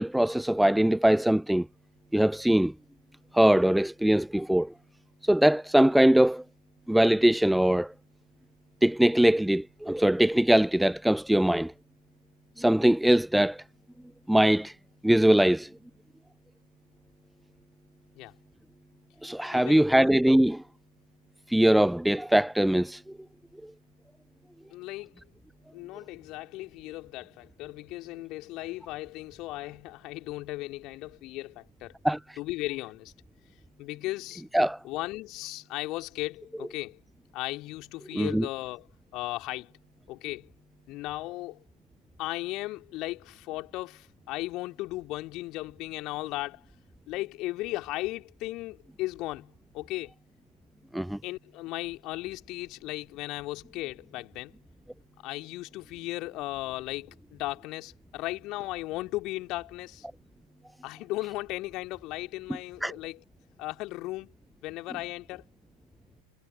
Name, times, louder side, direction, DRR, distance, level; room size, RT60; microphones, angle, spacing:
voice 1, 0.0-1.7 2.1-2.7 3.3-4.7 5.2-6.4 6.9-7.9 8.8-11.7 12.6-13.6 14.3-14.7 15.0-15.7 19.2-20.6 21.5-23.0 32.0-32.4 34.5-34.8 38.1-38.5 50.9-51.2 62.8-62.9, right 1 dB, ahead, 0.3 m, -22 dB
voice 2, 19.5-20.1 24.7-25.1 25.7-32.0 32.4-33.1 33.8-34.4 34.8-37.0 37.3-38.9 39.1-39.7 40.1-40.5 40.9-41.6 42.2-46.6 47.1-50.1 51.2-54.5 55.2-60.0 60.8-63.2 63.6-64.3 64.6-65.4, left 19 dB, 40° left, 2.9 m, -36 dB
figure-of-eight pair, 90°, 0 cm